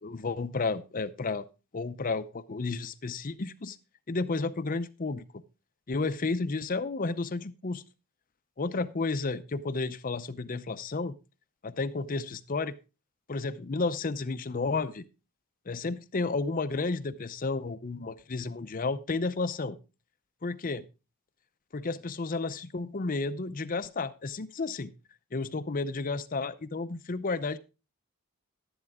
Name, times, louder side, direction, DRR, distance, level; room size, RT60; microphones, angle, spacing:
voice 1, 0.0-1.5 1.7-3.8 4.1-5.2 5.9-7.8 8.6-11.2 11.6-12.8 13.3-15.0 15.7-19.8 20.4-20.9 21.7-24.9 25.3-27.6, left 3 dB, 40° left, 0.6 m, -32 dB
12.0 x 10.0 x 3.6 m
head